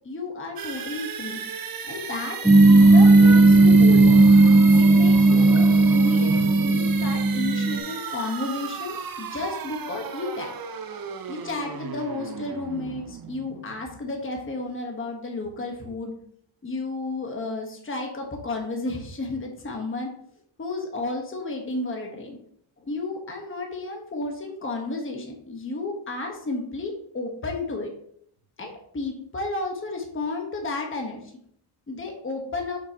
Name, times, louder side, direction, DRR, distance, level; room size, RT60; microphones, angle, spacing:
voice 1, 0.0-1.4 1.9-2.4 2.6-4.2 4.8-10.5 11.3-16.1 16.6-20.1 20.6-22.4 22.9-27.9 28.6-31.2 31.9-32.8, left 3 dB, 25° left, 1 dB, 1.2 m, -32 dB
sound 1, 0.6-14.3, right 7 dB, 45° right, 0.6 m, -35 dB
sound 2, 2.4-7.8, right 2 dB, 5° right, 0.5 m, -15 dB
7.4 x 5.9 x 2.9 m, 0.66 s
wide cardioid pair, 135°, 49 cm